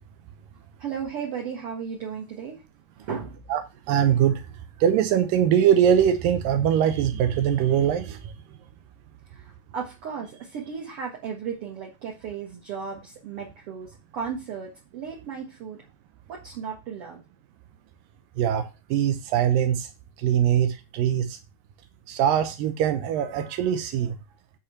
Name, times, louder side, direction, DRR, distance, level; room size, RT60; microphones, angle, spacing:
voice 1, 0.8-2.6 3.0-3.4 9.3-15.8 16.3-17.2, right 6 dB, 50° right, 2.2 m, -35 dB
voice 2, 3.9-4.4 4.8-8.2 18.4-19.9 20.2-21.4 22.1-24.2, right 9 dB, 90° right, 2.5 m, -22 dB
10.0 x 4.4 x 5.7 m
omnidirectional pair, 3.9 m